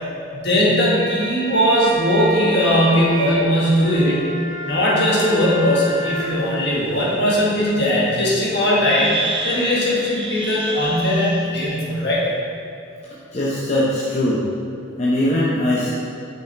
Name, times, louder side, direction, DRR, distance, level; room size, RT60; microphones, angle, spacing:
voice 1, 0.3-4.2 4.6-12.3, equal, 55° left, -6 dB, 1.4 m, -19 dB
sound 1, 0.7-6.3, equal, 60° right, 0.9 m, -30 dB
sound 2, 6.3-6.4 6.9-7.0 8.4-8.5 8.8-11.5, right 2 dB, 25° right, 0.5 m, -29 dB
voice 2, 13.1-14.5 15.0-15.9, left 1 dB, 35° left, -7 dB, 0.6 m, -21 dB
6.1 x 5.6 x 3.3 m, 2.7 s
head